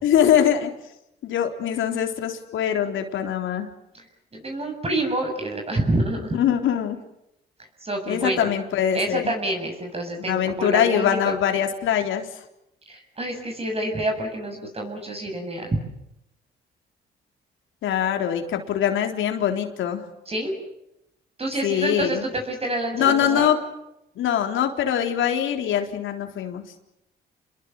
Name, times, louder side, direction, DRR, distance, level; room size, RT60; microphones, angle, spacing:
voice 1, 0.0-0.7 1.2-3.7 6.3-7.0 8.1-9.2 10.3-12.3 17.8-20.1 21.6-22.2 22.9-23.6 24.2-26.6, left 9 dB, 80° left, 5 dB, 3.8 m, -23 dB
voice 2, 4.3-6.4 7.8-8.5 8.9-11.3 12.9-15.8 20.3-20.6 21.4-23.5, right 1 dB, 30° right, 3 dB, 7.2 m, -27 dB
29.5 x 21.5 x 7.8 m, 0.84 s
cardioid pair, 90°, 20 cm